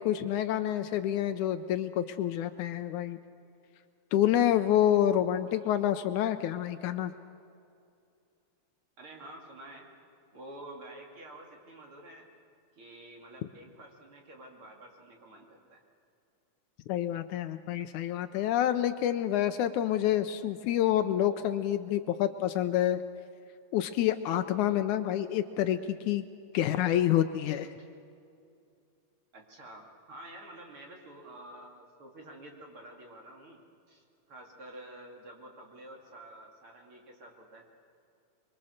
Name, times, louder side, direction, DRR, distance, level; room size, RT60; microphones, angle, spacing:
voice 1, 0.0-3.2 4.1-7.1 16.9-23.0 23.7-26.2 26.5-27.7, left 11 dB, 75° left, 10 dB, 2.0 m, -28 dB
voice 2, 9.0-9.9 10.3-12.3 12.8-15.8 27.4-27.9 29.3-37.7, right 1 dB, 45° right, 0 dB, 3.1 m, -49 dB
25.0 x 23.5 x 6.5 m, 2.5 s
omnidirectional pair, 3.7 m